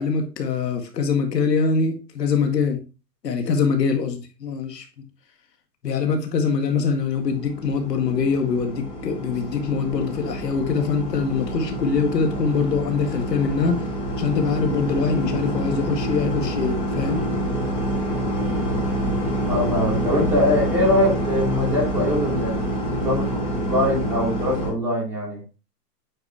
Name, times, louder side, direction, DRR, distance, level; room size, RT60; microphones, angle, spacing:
voice 1, 0.0-2.8 3.2-4.9 5.8-13.8 14.2-17.2, left 5 dB, 80° left, 4 dB, 1.9 m, -23 dB
sound 1, 7.2-24.7, right 1 dB, 10° left, 2.6 m, -27 dB
voice 2, 19.4-22.6 22.9-25.4, left 1 dB, 5° right, -7 dB, 3.1 m, -23 dB
8.6 x 5.1 x 2.7 m, 0.31 s
hypercardioid pair, 170°, 48 cm